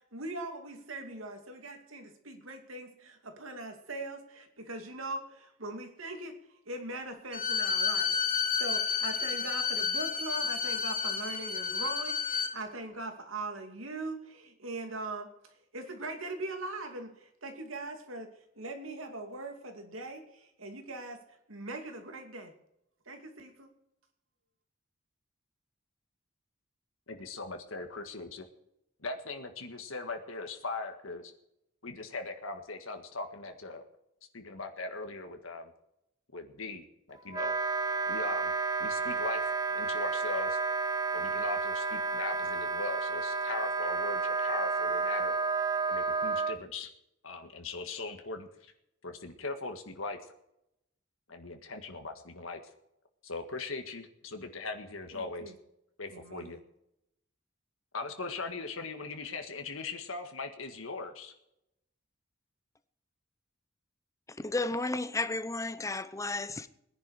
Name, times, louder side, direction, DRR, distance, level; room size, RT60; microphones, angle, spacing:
voice 1, 0.0-6.3 6.7-15.3 15.7-18.3 18.6-21.2 21.5-22.5 23.1-23.7 55.1-55.5 56.1-56.6, right 2 dB, 80° right, 2.6 m, -41 dB
Bowed string instrument, 7.3-12.5, left 6 dB, 40° left, 2.2 m, -31 dB
voice 2, 27.1-28.5 29.0-31.3 31.8-33.8 34.3-35.7 36.3-37.5 38.0-38.5 38.8-40.6 41.1-45.4 45.9-46.9 47.2-48.7 49.0-50.2 51.3-52.6 53.2-55.5 56.0-56.6 57.9-61.3, left 3 dB, 80° left, 1.7 m, -40 dB
Wind instrument woodwind instrument, 37.3-46.6, right 4 dB, 20° right, 0.6 m, -31 dB
voice 3, 64.3-66.7, left 2 dB, 15° left, 0.7 m, -33 dB
20.0 x 10.5 x 4.9 m
head